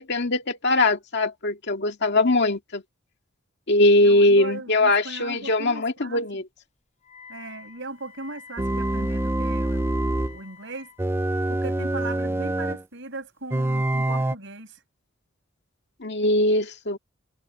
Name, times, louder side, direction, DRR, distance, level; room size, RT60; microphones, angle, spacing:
voice 1, 0.0-2.8 3.7-6.4 16.0-17.0, left 2 dB, 55° left, 2.0 m, -21 dB
voice 2, 4.0-6.4 7.3-10.9 11.5-14.8, right 2 dB, 60° right, 7.7 m, -38 dB
Wind instrument woodwind instrument, 7.0-11.1, left 6 dB, 35° left, 6.7 m, -47 dB
sound 1, 8.6-10.4 11.0-12.8 13.5-14.3, right 1 dB, 10° right, 0.4 m, -25 dB
head